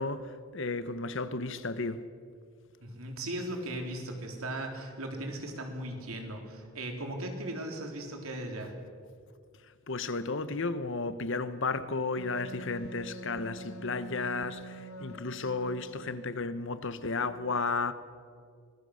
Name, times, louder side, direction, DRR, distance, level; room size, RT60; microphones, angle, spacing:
voice 1, 0.0-2.0 9.9-17.9, left 3 dB, 60° left, 1.1 m, -33 dB
voice 2, 2.8-8.8, right 1 dB, 75° right, 3.7 m, -37 dB
Wind instrument woodwind instrument, 12.2-16.3, right 1 dB, 80° left, 1.5 m, -46 dB
25.0 x 20.0 x 6.5 m
head